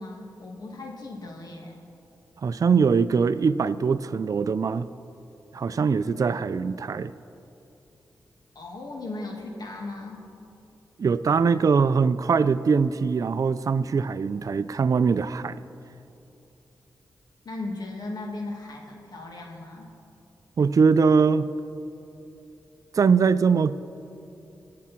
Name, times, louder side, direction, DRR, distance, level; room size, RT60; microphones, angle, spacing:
voice 1, 0.0-1.7 8.5-10.3 17.4-19.9, left 2 dB, 65° left, 0 dB, 2.4 m, -37 dB
voice 2, 2.4-4.9 5.5-7.1 11.0-15.6 20.6-21.5 22.9-23.8, right 5 dB, 50° right, 12 dB, 0.4 m, -22 dB
24.0 x 8.5 x 4.5 m, 2.8 s
cardioid pair, 55°, 7 cm